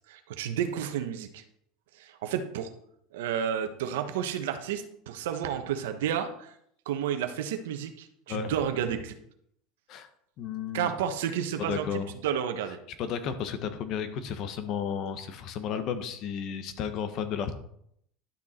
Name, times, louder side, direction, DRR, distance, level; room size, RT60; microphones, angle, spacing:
voice 1, 0.1-1.4 2.0-2.7 3.1-6.5 6.9-9.1 10.7-12.8, right 9 dB, 90° right, 7 dB, 1.2 m, -31 dB
voice 2, 10.4-10.9 11.6-12.1 13.0-17.5, left 7 dB, 50° left, 10 dB, 1.3 m, -33 dB
11.5 x 6.3 x 4.4 m, 0.71 s
supercardioid pair, 120°, 0 cm